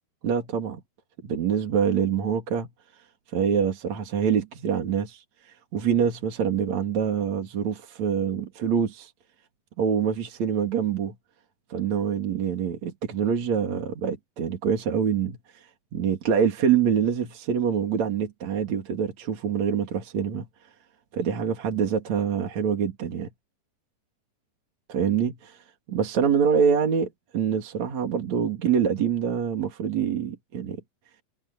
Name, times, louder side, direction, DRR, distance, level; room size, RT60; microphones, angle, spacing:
voice 1, 0.2-0.8 1.2-2.7 3.3-5.2 5.7-9.1 9.8-11.1 11.7-15.4 15.9-20.5 21.1-23.3 24.9-25.6 25.9-30.8, right 7 dB, 60° right, 3.9 m, -25 dB
omnidirectional pair, 3.7 m